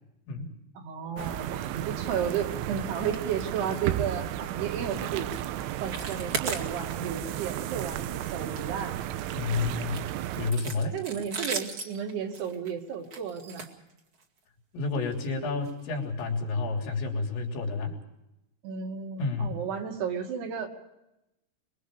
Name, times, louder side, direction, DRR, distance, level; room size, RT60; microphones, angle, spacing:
voice 1, 0.8-5.3 5.8-8.9 10.9-13.7 18.6-20.7, right 7 dB, 65° right, 2 dB, 4.1 m, -33 dB
sound 1, 1.2-10.5, right 12 dB, 85° right, 3.3 m, -34 dB
sound 2, 3.0-3.2 3.5-3.8 4.1-4.3 4.7-4.9 5.3-5.5 5.8-7.2 7.5-7.7 8.1-9.2 9.8-14.4 15.1-15.3 15.6-15.7 16.2-16.3, right 4 dB, 40° right, 2.1 m, -38 dB
voice 2, 9.3-10.1 10.4-11.0 14.7-18.0 19.2-19.6, left 3 dB, 70° left, 0 dB, 5.7 m, -30 dB
25.5 x 22.5 x 4.9 m, 0.90 s
omnidirectional pair, 5.4 m